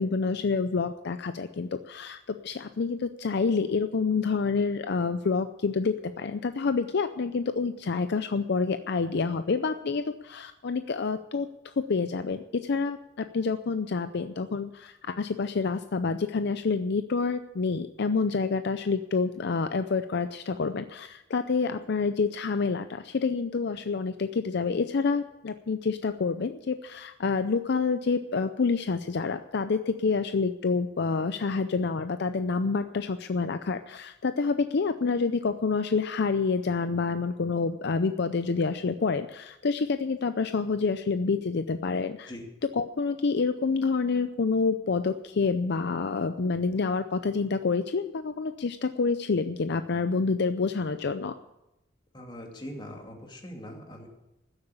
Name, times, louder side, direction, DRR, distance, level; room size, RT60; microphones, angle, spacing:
voice 1, 0.0-11.5 11.9-42.3 42.7-51.3, left 4 dB, 60° left, 10 dB, 0.5 m, -28 dB
voice 2, 52.1-54.1, equal, 25° left, 1 dB, 2.5 m, -41 dB
14.0 x 8.0 x 8.5 m, 0.94 s
head